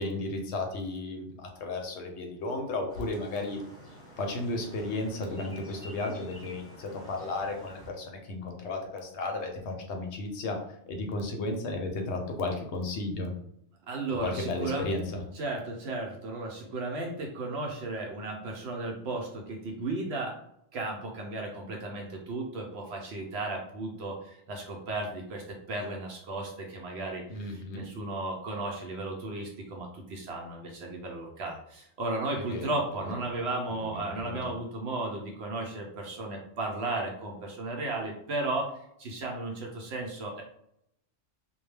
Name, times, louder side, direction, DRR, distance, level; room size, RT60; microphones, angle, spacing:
voice 1, 0.0-3.6 4.2-10.6 10.9-13.3 14.2-15.2 27.3-27.9 32.4-32.7 33.0-33.1 33.7-34.5, left 2 dB, 70° left, 3 dB, 0.8 m, -34 dB
sound 1, 2.9-7.9, equal, 15° left, 0.6 m, -49 dB
voice 2, 13.9-14.9 15.3-20.3 20.7-40.4, right 2 dB, 65° right, 0 dB, 0.8 m, -35 dB
2.2 x 2.1 x 3.2 m, 0.74 s
omnidirectional pair, 1.2 m